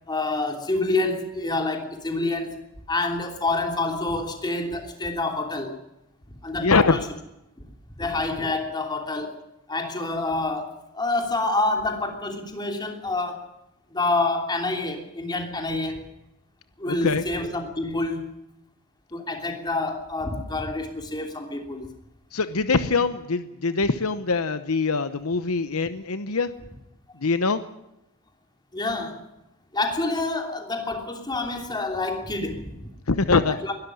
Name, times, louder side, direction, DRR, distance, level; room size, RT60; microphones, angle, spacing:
voice 1, 0.1-2.6 2.9-5.8 6.4-7.0 8.0-9.4 9.7-13.5 13.9-16.1 16.8-18.3 19.1-21.9 28.7-29.2 29.7-32.9 33.6-33.7, left 2 dB, 20° left, 4 dB, 3.1 m, -27 dB
voice 2, 6.6-7.0 16.9-17.2 22.3-26.5 27.2-27.6 33.1-33.6, left 4 dB, 70° left, 12 dB, 1.0 m, -23 dB
21.5 x 13.0 x 10.0 m, 0.88 s
head